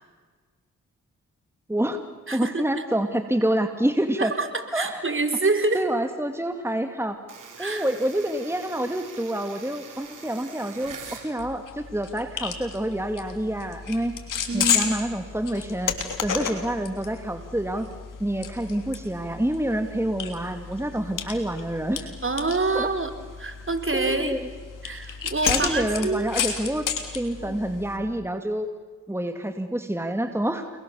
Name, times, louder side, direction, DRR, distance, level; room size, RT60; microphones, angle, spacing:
voice 1, 1.7-2.0 2.3-4.3 4.7-5.0 5.7-7.2 7.6-14.1 14.5-16.0 16.2-17.9 18.2-22.1 22.7-22.9 23.9-24.5 25.5-26.9 27.1-28.7 29.1-30.7, right 1 dB, 10° right, 7 dB, 2.4 m, -27 dB
voice 2, 2.3-2.8 4.2-5.9 7.6-7.8 14.5-14.9 22.2-23.1 23.4-24.3 24.8-26.3 27.4-27.6, right 3 dB, 40° right, 7 dB, 3.8 m, -26 dB
sound 1, 7.3-11.3, right 5 dB, 80° right, 5.1 m, -43 dB
sound 2, 11.4-28.0, left 6 dB, 80° left, 3.2 m, -32 dB
30.0 x 21.5 x 7.1 m, 1.4 s
supercardioid pair, 45°, 31 cm